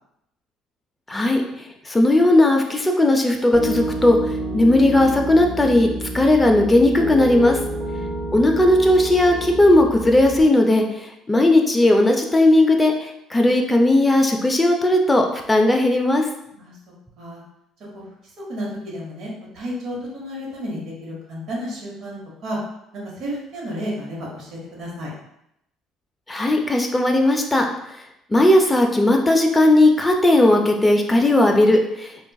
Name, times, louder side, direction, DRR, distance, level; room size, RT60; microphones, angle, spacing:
voice 1, 1.1-5.9 6.1-7.6 8.3-16.2 26.3-27.6 28.3-32.3, left 1 dB, 15° left, 2 dB, 0.4 m, -17 dB
Piano, 3.5-10.4, right 2 dB, 15° right, 0.9 m, -29 dB
voice 2, 7.8-8.5 16.6-16.7 17.2-17.4 17.9-18.0 18.5-19.3 19.5-22.6 22.9-25.1, equal, 55° right, -4 dB, 1.1 m, -32 dB
3.6 x 2.3 x 2.3 m, 0.80 s
cardioid pair, 115°, 0 cm